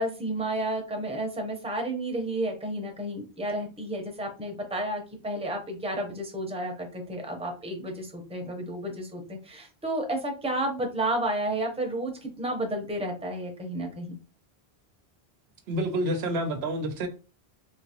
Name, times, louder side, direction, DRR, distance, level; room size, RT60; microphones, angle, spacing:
voice 1, 0.0-14.1, right 1 dB, 5° right, 0.7 m, -31 dB
voice 2, 15.7-17.1, right 1 dB, 85° right, 0.9 m, -28 dB
3.3 x 2.8 x 2.9 m
omnidirectional pair, 1.0 m